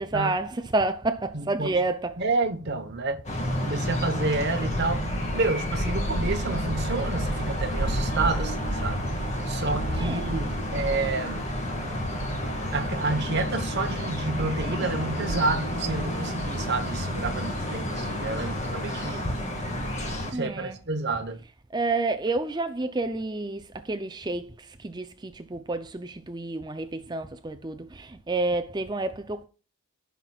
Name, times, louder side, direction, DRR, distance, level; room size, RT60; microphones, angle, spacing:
voice 1, 0.0-2.1 10.0-10.2 20.3-20.8 21.7-24.5 24.8-29.4, right 2 dB, 20° right, 0.5 m, -29 dB
voice 2, 1.3-1.8 2.2-3.2 3.6-5.1 5.3-9.1 9.5-11.4 12.7-19.2 20.3-21.4, right 3 dB, 50° right, 1.0 m, -29 dB
sound 1, 3.3-20.3, equal, 30° left, 1.8 m, -29 dB
15.0 x 5.8 x 2.4 m
head